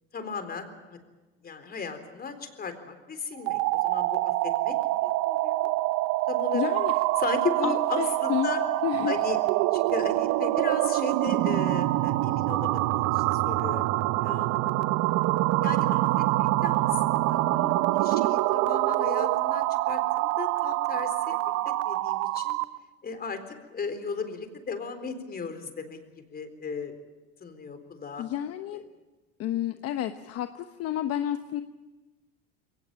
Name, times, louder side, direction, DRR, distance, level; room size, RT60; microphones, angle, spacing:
voice 1, 0.1-1.0 1.4-4.8 5.0-5.7 6.3-6.7 7.2-8.6 9.1-9.4 9.7-13.9 14.2-14.8 15.6-21.5 21.8-22.6 23.0-23.4 23.7-26.0 26.3-26.9 27.4-28.2, left 5 dB, 30° left, 8 dB, 4.0 m, -36 dB
sound 1, 3.4-22.8, right 17 dB, 60° right, 0.9 m, -25 dB
voice 2, 6.5-6.9 7.6-8.5 8.8-9.1 28.2-28.9 29.4-31.6, left 11 dB, 55° left, 9 dB, 1.2 m, -30 dB
22.0 x 18.5 x 8.9 m, 1.2 s
supercardioid pair, 95°, 30 cm